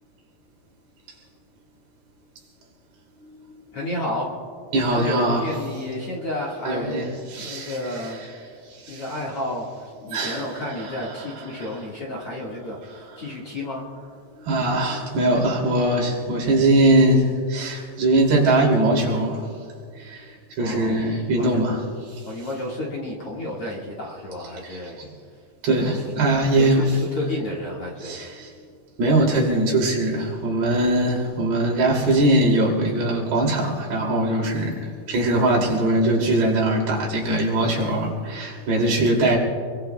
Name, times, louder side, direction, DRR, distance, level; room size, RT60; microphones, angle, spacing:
voice 1, 3.7-4.3 4.9-7.1 7.4-8.2 8.9-12.8 13.2-13.9 20.6-21.7 22.3-25.0 26.5-28.2, left 1 dB, 45° left, -4 dB, 2.1 m, -31 dB
voice 2, 4.7-5.5 6.7-8.1 8.7-9.0 10.1-11.0 11.6-11.7 14.4-19.5 20.0-20.3 20.6-21.8 22.1-22.2 24.6-25.1 25.6-26.9 28.0-28.5 29.0-39.4, right 1 dB, 70° right, -2 dB, 4.7 m, -21 dB
27.5 x 22.5 x 2.3 m, 2.2 s
omnidirectional pair, 4.7 m